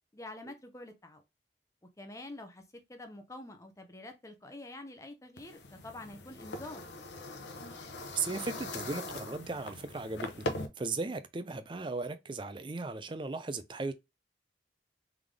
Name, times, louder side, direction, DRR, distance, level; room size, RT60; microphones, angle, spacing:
voice 1, 0.1-1.2 2.0-6.8, left 2 dB, 15° left, 0.7 m, -47 dB
sound 1, 5.4-10.7, left 2 dB, 85° left, 0.8 m, -41 dB
voice 2, 8.1-10.5 10.8-13.9, right 3 dB, 25° right, 0.5 m, -36 dB
3.7 x 3.5 x 3.3 m
head